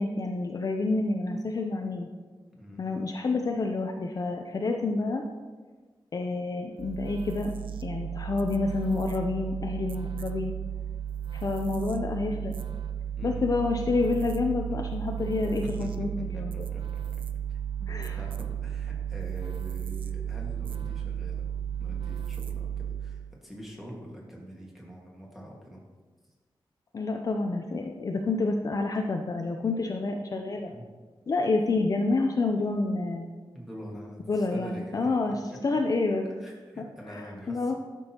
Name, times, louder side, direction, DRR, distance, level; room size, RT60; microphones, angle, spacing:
voice 1, 0.0-2.1 2.8-5.2 6.1-7.5 7.8-10.5 11.3-12.5 13.2-16.7 17.9-18.2 26.9-30.7 31.3-33.3 34.3-36.2 36.8-36.9 37.5-37.8, left 3 dB, 40° left, 3 dB, 0.5 m, -28 dB
voice 2, 2.6-3.0 13.2-13.5 14.7-14.8 15.8-15.9 16.2-17.0 17.5-17.9 18.2-21.5 21.8-25.8 30.7-30.9 33.5-35.6 36.4-37.8, equal, ahead, -3 dB, 1.7 m, -45 dB
sound 1, 6.8-23.3, right 9 dB, 75° right, 0.4 m, -34 dB
12.0 x 6.1 x 2.9 m, 1.3 s
wide cardioid pair, 170°, 9 cm